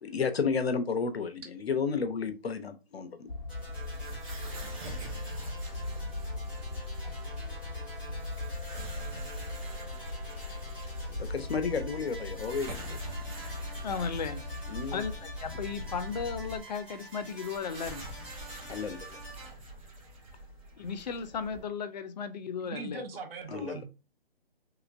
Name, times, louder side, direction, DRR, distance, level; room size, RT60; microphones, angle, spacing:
voice 1, 0.0-3.3 11.2-13.0 14.7-15.0 18.7-19.2 23.5-23.8, left 5 dB, 85° left, 0.8 m, -32 dB
sound 1, 3.3-16.6, left 2 dB, 60° left, 1.0 m, -39 dB
sound 2, 3.5-19.5, right 2 dB, 5° right, 0.5 m, -48 dB
sound 3, 3.5-21.6, right 1 dB, 35° right, 1.1 m, -47 dB
voice 2, 4.5-4.8 18.6-18.7 22.7-23.8, right 4 dB, 65° right, 0.7 m, -41 dB
voice 3, 13.8-14.4 14.9-18.1 20.8-23.1, left 6 dB, 45° left, 0.4 m, -35 dB
3.2 x 2.9 x 2.5 m
hypercardioid pair, 150°, 30 cm